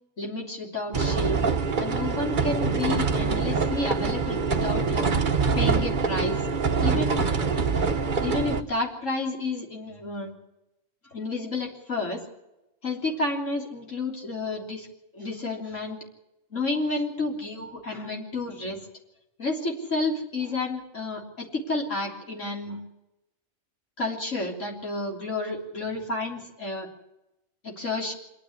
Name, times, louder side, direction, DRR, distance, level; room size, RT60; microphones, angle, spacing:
voice 1, 0.2-1.4 1.8-5.1 5.6-6.4 6.8-7.3 8.2-10.3 11.1-12.2 12.8-14.9 15.1-16.0 16.5-18.8 19.4-22.8 24.0-26.9 27.6-28.1, left 2 dB, 60° left, -1 dB, 3.8 m, -30 dB
sound 1, 0.9-8.6, right 5 dB, 40° right, 1.1 m, -25 dB
26.5 x 10.0 x 9.8 m, 0.93 s
omnidirectional pair, 1.4 m